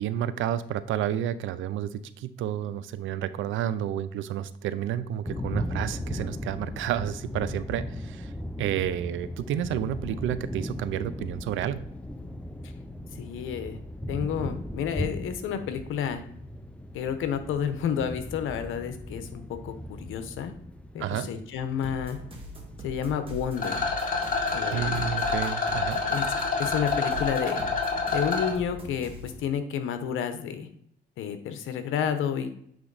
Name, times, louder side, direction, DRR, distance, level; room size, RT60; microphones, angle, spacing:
voice 1, 0.0-8.3 8.6-11.9 21.0-21.3 24.7-26.0, right 10 dB, 80° right, 15 dB, 0.5 m, -30 dB
sound 1, 5.3-22.9, left 1 dB, 5° left, 0.5 m, -37 dB
voice 2, 13.2-13.8 14.1-16.2 16.9-19.7 20.0-20.5 20.9-22.2 22.8-23.9 24.5-25.1 26.1-26.3 26.6-27.6 28.1-30.7 31.2-32.5, left 8 dB, 85° left, 9 dB, 0.9 m, -30 dB
sound 2, 21.8-29.4, equal, 25° right, 1.7 m, -41 dB
Rattle, 23.6-28.5, left 4 dB, 45° left, 2.1 m, -28 dB
8.8 x 3.1 x 4.0 m, 0.68 s
cardioid pair, 90°, 20 cm